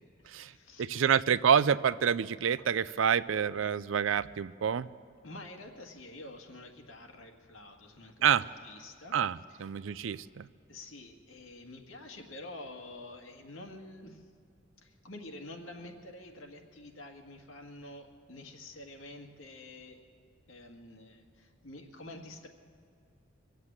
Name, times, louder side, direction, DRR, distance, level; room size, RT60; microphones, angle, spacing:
voice 1, 0.0-0.9 5.2-9.2 9.5-9.6 10.7-14.3 14.8-20.0 20.5-22.5, left 2 dB, 85° left, 3 dB, 1.8 m, -48 dB
voice 2, 0.8-4.9 8.2-8.5 9.1-10.5, right 7 dB, 75° right, 17 dB, 0.4 m, -27 dB
23.5 x 8.1 x 7.4 m, 2.4 s
head